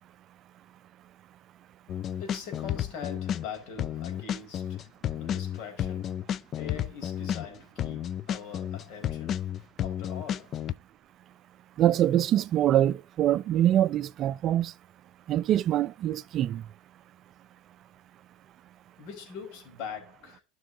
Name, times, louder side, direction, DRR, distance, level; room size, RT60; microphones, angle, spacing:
sound 1, 1.9-3.5 3.8-10.7, left 10 dB, 45° left, 0.4 m, -32 dB
voice 1, 2.2-4.8 5.2-6.1 6.5-9.4 9.8-10.5 19.0-20.4, left 6 dB, 60° left, 4.6 m, -42 dB
voice 2, 11.8-14.7 15.3-16.6, right 12 dB, 45° right, 0.4 m, -24 dB
12.5 x 6.2 x 2.6 m
hypercardioid pair, 95°, 0 cm